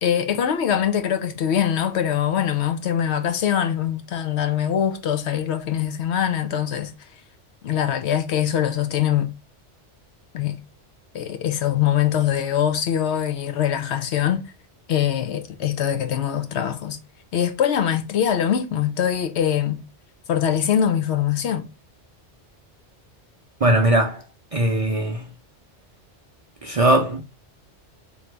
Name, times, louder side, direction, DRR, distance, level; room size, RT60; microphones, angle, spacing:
voice 1, 0.0-6.9 7.6-9.3 10.3-10.6 11.1-14.5 14.9-17.0 17.3-19.8 20.3-21.7, left 9 dB, 70° left, 0.9 m, -23 dB
voice 2, 23.6-24.2 24.5-25.3 26.6-27.2, right 1 dB, 45° right, 0.5 m, -19 dB
3.9 x 3.1 x 3.2 m
omnidirectional pair, 1.2 m